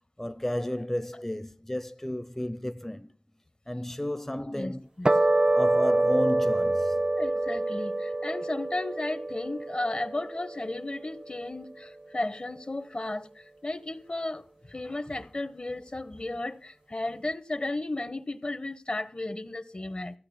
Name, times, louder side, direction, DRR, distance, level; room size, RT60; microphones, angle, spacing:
voice 1, 0.2-3.1 3.7-4.9 5.5-7.1, left 1 dB, 15° left, 0.5 m, -33 dB
voice 2, 4.3-5.1 7.2-20.2, left 2 dB, 50° left, 0.9 m, -34 dB
sound 1, 5.1-11.6, right 2 dB, 40° right, 0.5 m, -26 dB
15.5 x 5.7 x 8.6 m
wide cardioid pair, 45°, 2 cm